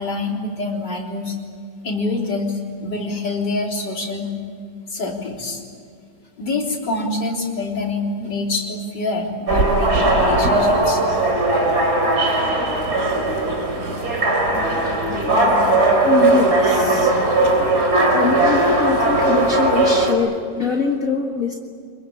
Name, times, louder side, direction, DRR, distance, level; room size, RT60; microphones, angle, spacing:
voice 1, 0.0-1.4 1.8-4.3 4.9-5.6 6.4-11.0, left 2 dB, 80° left, 0 dB, 4.4 m, -26 dB
sound 1, 9.5-20.1, right 2 dB, 65° right, 4.1 m, -18 dB
voice 2, 14.5-15.4 16.0-17.3 18.0-21.6, left 5 dB, 50° left, 1 dB, 2.1 m, -24 dB
26.5 x 22.5 x 8.6 m, 2.3 s
omnidirectional pair, 1.8 m